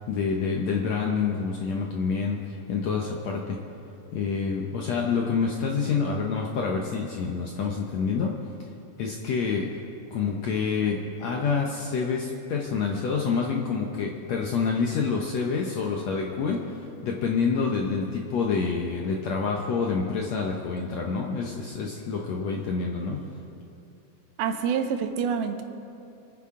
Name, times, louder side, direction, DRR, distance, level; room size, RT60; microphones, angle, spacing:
voice 1, 0.1-3.6 4.1-8.4 9.0-9.8 10.1-23.2, left 5 dB, 75° left, 0 dB, 1.6 m, -27 dB
voice 2, 24.4-25.6, right 7 dB, 85° right, 6 dB, 2.7 m, -27 dB
26.0 x 9.8 x 3.7 m, 2.6 s
omnidirectional pair, 4.3 m